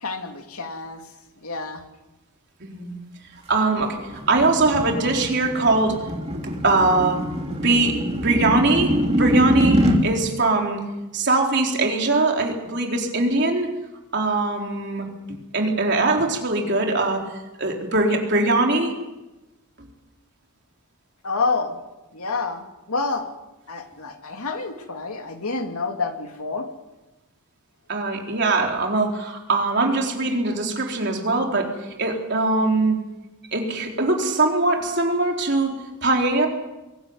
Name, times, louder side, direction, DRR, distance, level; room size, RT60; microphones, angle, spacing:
voice 1, 0.0-1.0 1.4-1.8 21.2-21.8 22.1-23.3 23.7-26.7, left 4 dB, 85° left, 4 dB, 2.7 m, -28 dB
voice 2, 2.6-2.9 3.5-4.0 4.3-6.0 6.6-7.2 7.5-8.0 8.2-10.8 11.1-13.7 14.1-17.2 17.6-18.9 19.8-19.9 27.9-31.7 32.0-33.0 33.5-36.5, right 2 dB, 50° right, 1 dB, 4.1 m, -21 dB
sound 1, 3.5-10.0, equal, 30° right, 2.9 m, -24 dB
23.5 x 15.0 x 9.5 m, 1.0 s
head